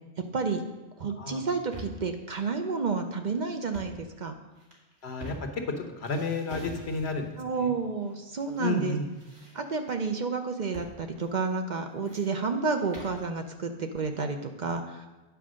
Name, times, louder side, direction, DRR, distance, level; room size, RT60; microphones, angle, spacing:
voice 1, 0.3-0.6 1.0-4.3 7.4-9.0 9.5-15.1, right 4 dB, 50° right, 5 dB, 0.7 m, -30 dB
voice 2, 1.1-1.4 5.0-7.7 8.6-9.1, left 3 dB, 75° left, 5 dB, 1.3 m, -32 dB
sound 1, 1.5-2.1 3.6-4.0 4.6-5.7 6.0-7.3 8.1-8.6 8.9-9.9 10.7-11.0 11.2-11.3 11.8-13.2, right 1 dB, 70° right, 2.3 m, -45 dB
9.4 x 4.8 x 6.2 m, 1.2 s
omnidirectional pair, 1.1 m